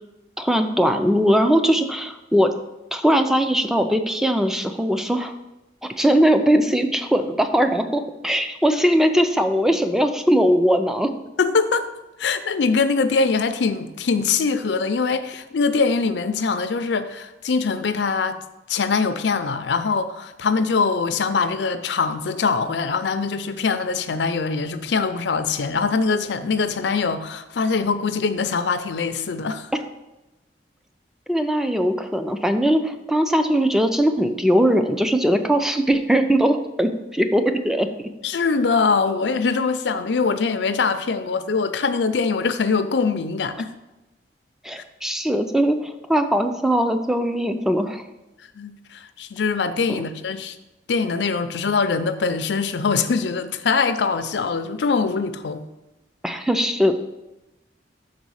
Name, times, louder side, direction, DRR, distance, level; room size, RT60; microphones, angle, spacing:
voice 1, 0.4-2.5 2.9-5.3 5.8-11.1 31.3-38.1 44.6-48.0 49.9-50.0 56.2-56.9, equal, 5° right, 7 dB, 0.4 m, -20 dB
voice 2, 11.4-11.9 12.2-18.4 18.7-29.7 38.2-43.7 48.5-50.6 50.9-55.6, left 4 dB, 80° left, 10 dB, 0.5 m, -23 dB
6.0 x 4.0 x 6.3 m, 1.0 s
head